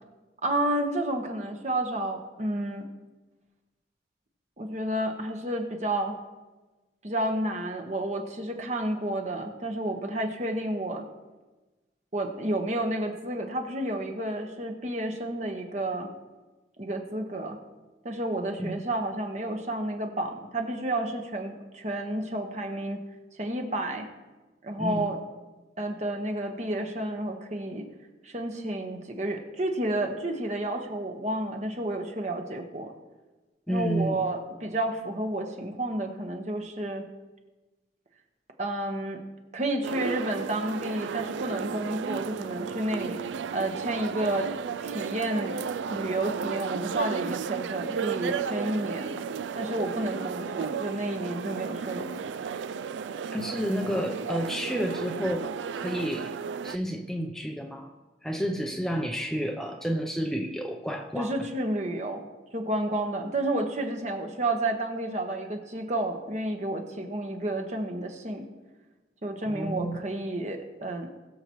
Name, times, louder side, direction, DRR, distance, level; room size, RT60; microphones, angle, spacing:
voice 1, 0.4-2.8 4.6-6.2 7.0-11.0 12.1-16.1 16.8-17.6 18.0-23.0 23.4-24.1 24.6-25.2 25.8-27.9 28.2-32.9 33.7-37.0 38.6-39.2 39.5-43.2 43.5-44.5 44.8-45.5 45.9-49.1 49.6-52.3 61.2-62.3 62.5-68.5 69.2-71.1, right 1 dB, 40° right, 3 dB, 1.3 m, -31 dB
voice 2, 33.7-34.2 53.3-55.5 55.8-56.3 56.6-57.9 58.2-61.3 69.4-70.0, equal, 5° left, 2 dB, 0.6 m, -30 dB
sound 1, 39.8-56.8, right 6 dB, 85° right, 0.3 m, -34 dB
21.0 x 7.0 x 3.1 m, 1.2 s
head